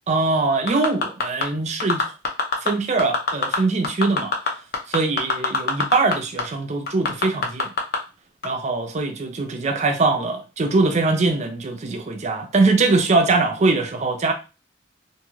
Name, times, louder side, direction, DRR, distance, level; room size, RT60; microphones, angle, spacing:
voice 1, 0.1-2.1 2.6-4.3 4.9-7.7 8.4-14.3, right 3 dB, 40° right, 0.5 m, -22 dB
sound 1, 0.7-1.4 1.8-2.7 3.0-3.6 3.8-6.1 6.4-6.5 6.9-8.0 8.4-8.5, left 4 dB, 55° left, 0.6 m, -21 dB
2.5 x 2.4 x 3.0 m
head